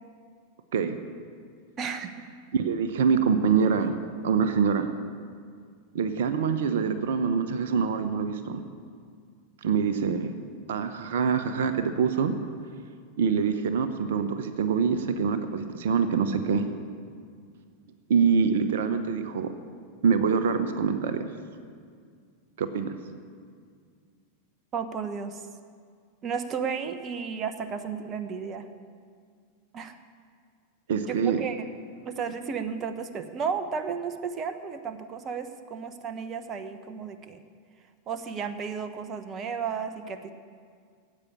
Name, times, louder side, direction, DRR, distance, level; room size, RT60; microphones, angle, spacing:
voice 1, 1.8-2.3 24.7-25.5 26.2-28.7 29.7-30.0 31.1-31.8 32.0-37.4 38.1-40.3, right 6 dB, 30° right, 9 dB, 1.1 m, -33 dB
voice 2, 2.5-4.0 4.2-4.9 5.9-8.6 9.6-10.3 10.7-12.3 13.2-16.7 18.1-19.5 20.0-21.2 22.6-22.9 30.9-31.4, right 6 dB, 65° right, 9 dB, 0.9 m, -25 dB
15.0 x 8.6 x 8.6 m, 2.1 s
figure-of-eight pair, 90°, 0 cm